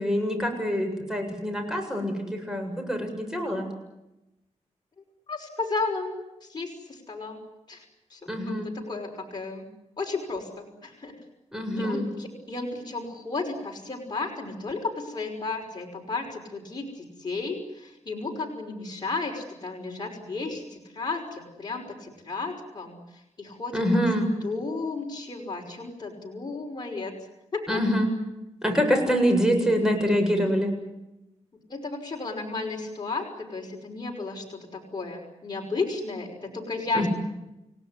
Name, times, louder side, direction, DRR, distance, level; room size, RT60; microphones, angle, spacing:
voice 1, 0.0-3.7 8.3-8.7 11.5-12.1 23.7-24.3 27.7-28.1 28.6-30.7 36.9-37.1, equal, 5° right, 4 dB, 7.6 m, -25 dB
voice 2, 5.3-7.4 7.7-7.8 8.1-9.7 10.0-11.2 11.8-23.8 24.4-27.1 27.5-27.8 31.7-37.1, left 3 dB, 35° left, 0 dB, 5.7 m, -33 dB
29.5 x 18.0 x 9.9 m, 0.94 s
wide cardioid pair, 100°, 12 cm